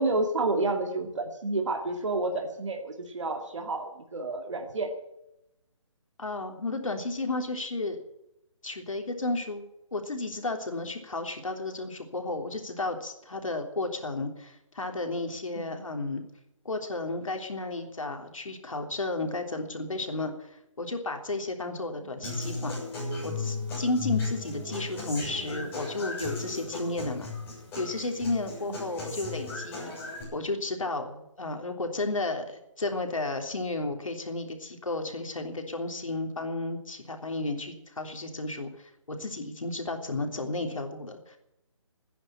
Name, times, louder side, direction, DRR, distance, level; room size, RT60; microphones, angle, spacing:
voice 1, 0.0-4.9 15.6-15.8 22.0-22.2 29.0-29.1, right 2 dB, 65° right, 3 dB, 2.4 m, -30 dB
voice 2, 6.2-8.0 8.6-9.6 9.9-16.2 16.7-22.8 23.2-27.3 27.8-29.9 30.3-41.4, left 2 dB, 80° left, 4 dB, 3.4 m, -33 dB
Human voice / Acoustic guitar, 22.2-30.2, left 3 dB, 10° left, 7.1 m, -36 dB
15.0 x 10.0 x 8.9 m, 0.87 s
figure-of-eight pair, 160°, 17 cm